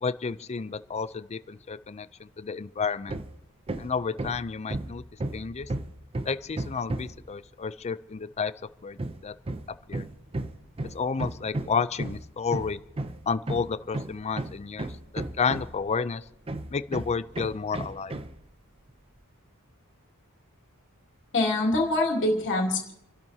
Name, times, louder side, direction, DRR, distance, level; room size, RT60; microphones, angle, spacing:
voice 1, 0.0-3.2 3.8-5.0 5.3-5.7 6.3-8.5 8.8-9.3 9.9-10.0 10.9-12.8 13.3-14.9 15.1-16.2 16.7-18.2, left 5 dB, 30° left, 15 dB, 0.4 m, -31 dB
Hammer, 3.1-3.4 3.7-7.3 9.0-15.9 16.5-18.4, right 2 dB, 25° right, 0.6 m, -34 dB
voice 2, 21.3-22.9, left 2 dB, 55° left, -1 dB, 3.0 m, -24 dB
29.0 x 12.0 x 2.8 m, 0.83 s
head